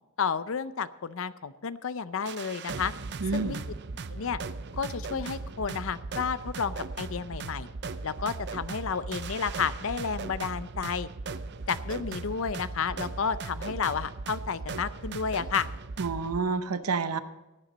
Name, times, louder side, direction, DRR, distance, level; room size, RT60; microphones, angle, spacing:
voice 1, 0.2-2.9 3.3-3.6 4.1-4.4 4.8-7.7 8.0-11.1 11.7-15.7, left 6 dB, 60° left, 15 dB, 0.5 m, -31 dB
sound 1, 2.3-16.4, right 3 dB, 50° right, 0.6 m, -38 dB
voice 2, 3.2-3.6 16.0-17.2, right 4 dB, 85° right, 12 dB, 0.8 m, -29 dB
18.0 x 9.0 x 4.1 m, 1.1 s
head